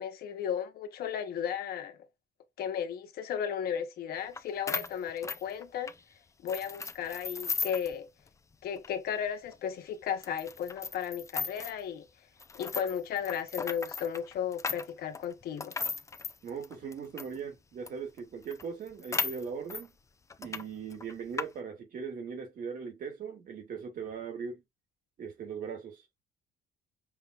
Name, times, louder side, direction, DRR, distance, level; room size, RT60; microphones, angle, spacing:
voice 1, 0.0-2.0 2.6-5.9 6.4-8.1 8.6-12.1 12.5-15.8, left 8 dB, 65° left, 1.2 m, -35 dB
sound 1, 4.3-4.4 4.7-6.0 6.5-7.9 8.3-8.4 8.8-8.9 9.5-9.6 10.2-11.8 12.4-17.4 17.9-18.0 18.2-18.3 18.5-19.9 20.3-20.6 20.9-21.5, left 4 dB, 20° left, 0.4 m, -36 dB
voice 2, 16.4-19.9 20.4-24.6 25.2-26.0, right 6 dB, 55° right, 2.4 m, -39 dB
5.8 x 3.2 x 2.5 m
cardioid pair, 110°, 17 cm